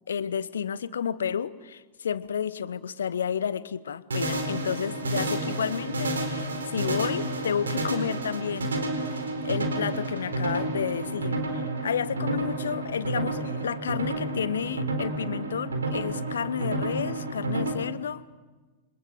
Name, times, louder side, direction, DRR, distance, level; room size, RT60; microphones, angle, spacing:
voice 1, 0.1-8.8 9.1-9.2 9.4-18.2, left 7 dB, 65° left, 17 dB, 1.0 m, -31 dB
sound 1, 4.1-17.7, right 2 dB, 70° right, 4.0 m, -30 dB
29.0 x 25.0 x 7.7 m, 1.3 s
figure-of-eight pair, 90°, 0 cm